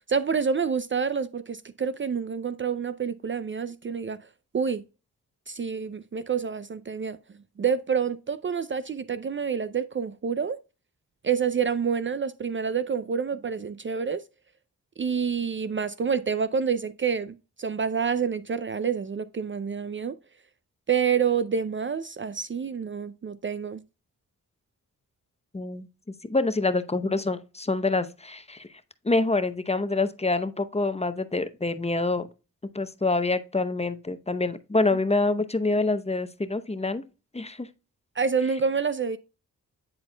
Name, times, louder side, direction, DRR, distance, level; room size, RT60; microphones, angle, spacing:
voice 1, 0.1-4.2 4.5-4.8 5.5-7.2 7.6-10.6 11.2-14.2 15.0-20.2 20.9-23.8 38.2-39.2, right 6 dB, 35° right, 0.4 m, -28 dB
voice 2, 25.5-25.9 26.2-28.7 29.0-32.3 32.7-37.0 37.3-37.7, left 3 dB, 20° left, 0.7 m, -26 dB
10.0 x 4.3 x 2.2 m
cardioid pair, 55°, 35 cm